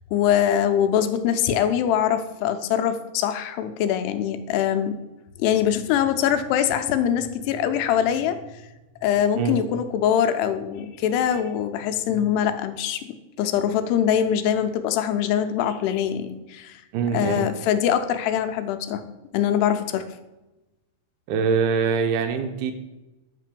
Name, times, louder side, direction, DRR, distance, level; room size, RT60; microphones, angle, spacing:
voice 1, 0.1-5.0 5.4-8.4 9.0-16.8 17.1-19.0 19.3-20.1, left 9 dB, 85° left, 9 dB, 2.7 m, -23 dB
voice 2, 16.9-17.5 21.3-22.7, right 6 dB, 80° right, 7 dB, 2.6 m, -23 dB
8.4 x 3.6 x 6.7 m, 1.0 s
omnidirectional pair, 4.7 m